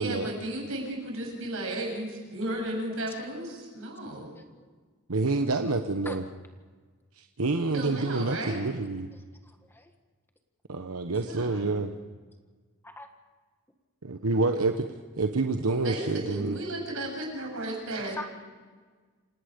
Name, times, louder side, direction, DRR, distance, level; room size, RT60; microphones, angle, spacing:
voice 1, 0.0-4.3 7.7-8.6 11.2-11.7 15.8-18.2, right 1 dB, 70° right, 0 dB, 7.8 m, -34 dB
voice 2, 4.1-4.7 6.0-6.2 9.4-9.9 11.5-11.6 13.0-13.1 17.2-17.3 18.1-18.2, left 1 dB, 10° left, 5 dB, 1.6 m, -43 dB
voice 3, 5.1-6.2 7.1-9.1 10.7-11.9 14.0-14.9 15.2-16.6, right 3 dB, 85° right, 6 dB, 1.1 m, -28 dB
27.5 x 18.0 x 5.2 m, 1.4 s
head